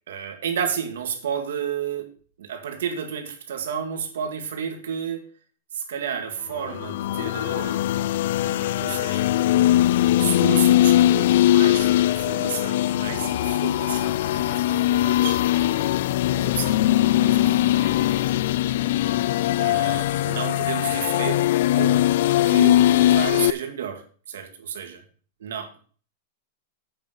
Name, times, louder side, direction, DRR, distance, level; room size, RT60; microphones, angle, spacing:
voice 1, 0.1-2.1 2.4-5.3 5.7-7.8 8.4-9.3 10.2-18.3 19.2-19.3 19.6-21.4 21.8-22.1 22.5-24.0 24.3-25.0 25.4-25.8, right 7 dB, 85° right, 5 dB, 2.1 m, -32 dB
sound 1, 6.6-23.5, left 13 dB, 65° left, 0.3 m, -21 dB
8.6 x 5.5 x 6.8 m, 0.43 s
supercardioid pair, 150°, 0 cm